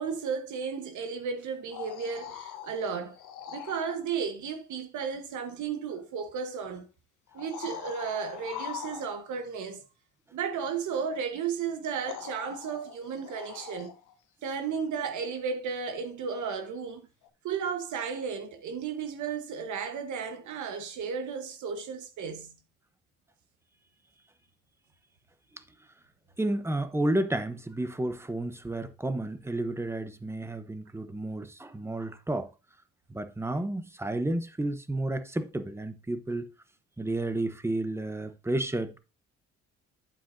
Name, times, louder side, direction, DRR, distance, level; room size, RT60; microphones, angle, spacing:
voice 1, 0.0-3.2 3.5-6.8 7.3-9.8 10.3-13.9 14.4-17.1 17.4-22.6, right 6 dB, 75° right, 1.2 m, -34 dB
sound 1, 1.5-4.0 5.9-6.0 7.3-9.5 11.4-11.5 12.0-14.2 17.2-17.3, left 10 dB, 80° left, 1.0 m, -42 dB
voice 2, 26.4-32.5 33.1-36.5 37.0-39.0, right 1 dB, 10° right, 0.8 m, -31 dB
8.5 x 7.5 x 2.6 m
cardioid pair, 90°, 30 cm